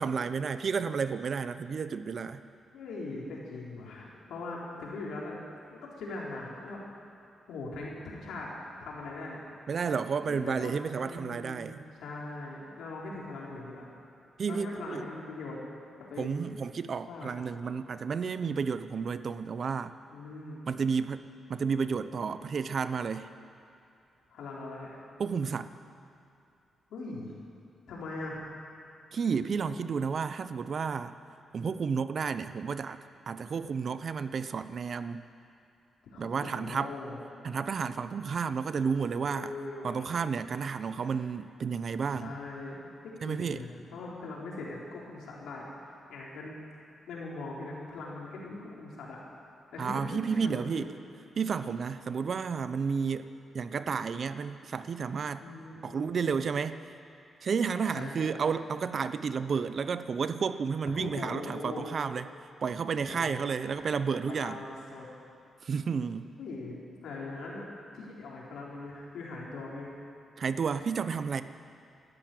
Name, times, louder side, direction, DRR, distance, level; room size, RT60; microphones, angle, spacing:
voice 1, 0.0-2.4 9.7-11.8 14.4-15.1 16.2-19.9 20.7-23.3 25.2-25.7 29.1-31.1 31.5-33.0 33.3-35.2 36.2-37.0 37.4-39.5 39.8-42.4 43.2-43.6 49.8-50.9 51.4-55.5 55.8-56.8 57.4-62.3 62.6-64.6 65.6-66.3 70.4-71.4, right 6 dB, 55° right, 12 dB, 0.7 m, -31 dB
voice 2, 2.7-5.4 5.7-6.8 7.5-8.5 8.8-9.4 10.3-11.7 12.0-13.9 14.5-15.6 16.1-16.4 17.1-17.3 20.1-20.7 24.3-25.0 26.9-27.3 27.9-28.4 36.1-37.2 39.3-40.1 42.1-46.5 47.1-49.2 49.7-50.8 55.4-56.2 57.9-58.4 60.9-61.9 63.1-65.1 66.4-66.8 67.0-67.6 67.9-69.9, left 3 dB, 85° left, -4 dB, 3.8 m, -41 dB
13.0 x 11.5 x 9.1 m, 2.7 s
cardioid pair, 85°, 0 cm